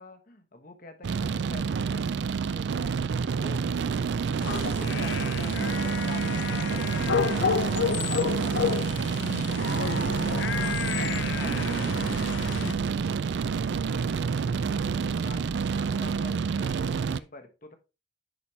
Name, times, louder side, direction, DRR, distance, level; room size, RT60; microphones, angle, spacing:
voice 1, 0.0-3.0 3.4-3.7 4.4-7.0 7.2-8.9 9.9-13.4 13.7-17.8, left 2 dB, 45° left, 1.1 m, -46 dB
sound 1, 1.0-17.2, right 5 dB, 65° right, 0.3 m, -28 dB
sound 2, 4.4-12.7, left 7 dB, 70° left, 0.4 m, -31 dB
10.0 x 4.3 x 3.2 m
head